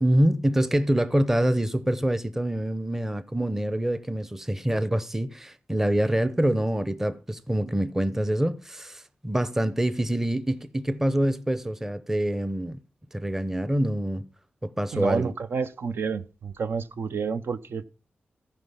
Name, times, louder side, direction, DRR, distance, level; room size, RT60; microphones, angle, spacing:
voice 1, 0.0-12.8 13.1-14.2 14.6-15.3, right 1 dB, 10° right, 0.7 m, -25 dB
voice 2, 14.9-17.8, right 5 dB, 75° right, 0.7 m, -29 dB
15.0 x 5.0 x 5.5 m
wide cardioid pair, 110°, 4 cm